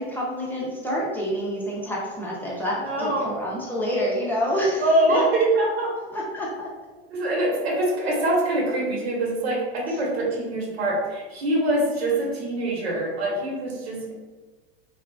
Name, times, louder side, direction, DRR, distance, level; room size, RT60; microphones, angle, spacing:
voice 1, 0.0-4.8 5.1-5.2 6.1-6.7, equal, 5° left, -5 dB, 0.5 m, -27 dB
voice 2, 2.8-3.4 4.8-5.9 7.1-14.1, right 1 dB, 90° right, -3 dB, 0.9 m, -24 dB
2.9 x 2.4 x 2.3 m, 1.3 s
supercardioid pair, 110°, 31 cm